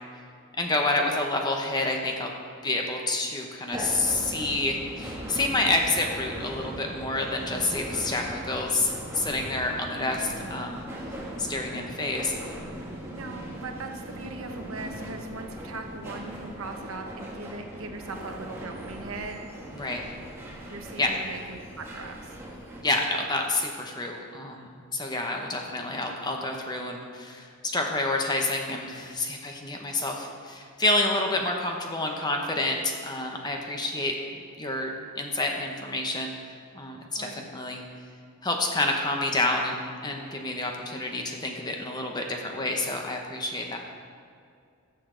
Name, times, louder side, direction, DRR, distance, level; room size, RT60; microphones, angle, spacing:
voice 1, 0.6-2.3 2.6-10.9 11.4-12.3 19.7-20.0 21.0-21.2 22.8-34.2 34.6-36.3 36.7-37.8 38.4-43.8, left 2 dB, 20° left, 2 dB, 0.9 m, -28 dB
sound 1, 3.7-22.8, equal, 10° right, 1.2 m, -39 dB
voice 2, 13.1-19.4 20.7-22.3 37.2-37.3, right 3 dB, 70° right, 4 dB, 1.0 m, -39 dB
14.0 x 7.0 x 3.8 m, 2.4 s
head